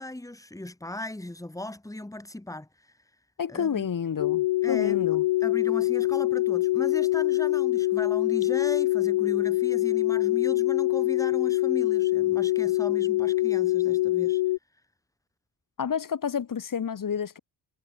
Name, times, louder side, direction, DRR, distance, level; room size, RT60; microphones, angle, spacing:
voice 1, 0.0-2.9 3.5-3.9 4.6-5.0 5.4-14.4, left 1 dB, 5° left, 6.8 m, -37 dB
voice 2, 3.4-5.2 15.8-17.4, left 7 dB, 45° left, 7.0 m, -30 dB
sound 1, 4.2-14.6, left 17 dB, 80° left, 1.1 m, -24 dB
cardioid pair, 110°, 46 cm